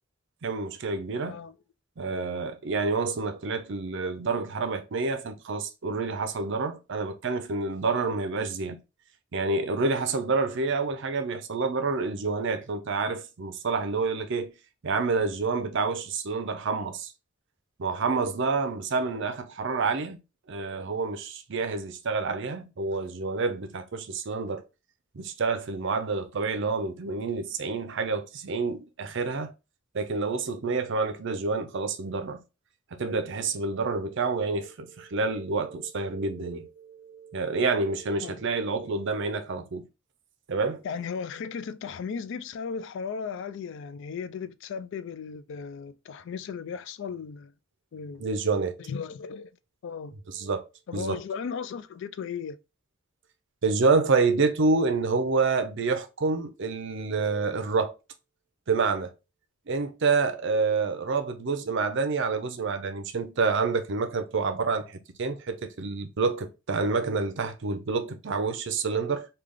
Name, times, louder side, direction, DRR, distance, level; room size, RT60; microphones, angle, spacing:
voice 1, 0.4-1.4 2.0-8.8 9.3-14.5 14.8-17.1 17.8-20.2 20.5-24.6 25.1-29.5 29.9-32.4 32.9-39.8 40.5-40.8 48.2-48.7 50.3-50.6 50.9-51.2 53.6-57.9 58.7-59.1 59.7-69.3, right 4 dB, 60° right, 0.6 m, -28 dB
voice 2, 40.8-47.5 47.9-48.3 48.8-49.6 49.8-50.1 50.9-52.6, left 6 dB, 60° left, 0.3 m, -36 dB
3.3 x 2.3 x 3.6 m
head